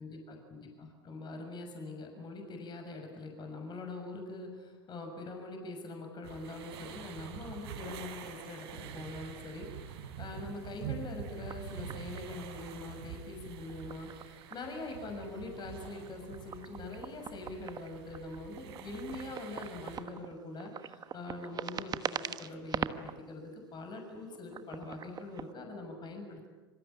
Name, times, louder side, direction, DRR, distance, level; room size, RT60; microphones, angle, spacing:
voice 1, 0.0-26.5, left 2 dB, 30° left, 4 dB, 6.4 m, -43 dB
sound 1, 6.2-20.0, right 8 dB, 70° right, 4.9 m, -46 dB
sound 2, 11.4-12.7 13.6-15.0 15.2-23.2 23.7-25.5, right 8 dB, 30° right, 1.3 m, -42 dB
26.0 x 25.0 x 8.6 m, 1.3 s
hypercardioid pair, 90°, 14 cm